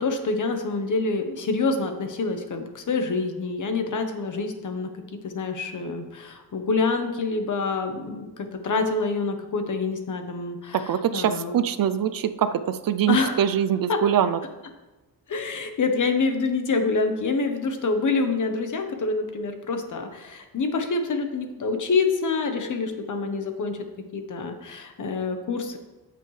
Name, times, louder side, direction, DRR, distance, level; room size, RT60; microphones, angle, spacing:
voice 1, 0.0-11.6 13.1-13.4 13.9-14.0 15.3-23.9 24.1-25.8, left 4 dB, 50° left, 6 dB, 1.1 m, -26 dB
voice 2, 10.7-14.4, right 9 dB, 65° right, 12 dB, 0.5 m, -23 dB
14.0 x 7.4 x 3.3 m, 1.1 s
wide cardioid pair, 180°, 38 cm